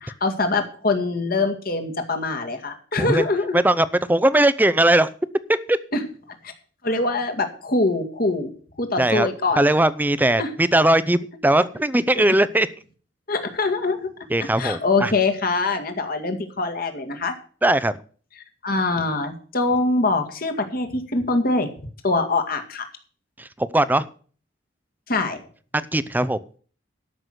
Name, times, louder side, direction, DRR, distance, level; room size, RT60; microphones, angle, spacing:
voice 1, 0.0-3.6 5.9-6.1 6.8-8.5 8.8-9.6 10.4-10.6 12.2-12.3 13.3-14.1 14.6-17.4 18.6-21.7 22.0-22.9 25.1-25.4, left 3 dB, 50° left, 5 dB, 2.0 m, -23 dB
voice 2, 3.5-5.1 5.5-5.8 9.0-9.3 9.6-12.7 14.3-15.1 17.6-17.9 23.4-24.0 25.7-26.4, right 1 dB, 10° right, 16 dB, 0.6 m, -19 dB
13.0 x 6.1 x 7.9 m, 0.43 s
head